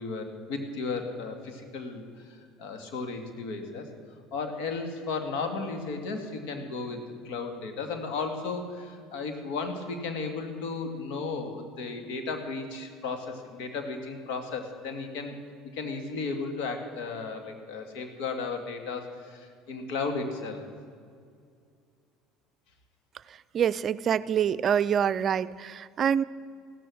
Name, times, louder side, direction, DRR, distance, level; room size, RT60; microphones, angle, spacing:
voice 1, 0.0-3.9 4.3-15.4 15.7-20.7, left 4 dB, 75° left, 5 dB, 2.2 m, -34 dB
voice 2, 23.3-26.2, right 8 dB, 45° right, 14 dB, 0.4 m, -26 dB
15.5 x 13.0 x 6.4 m, 2.2 s
supercardioid pair, 80°, 0 cm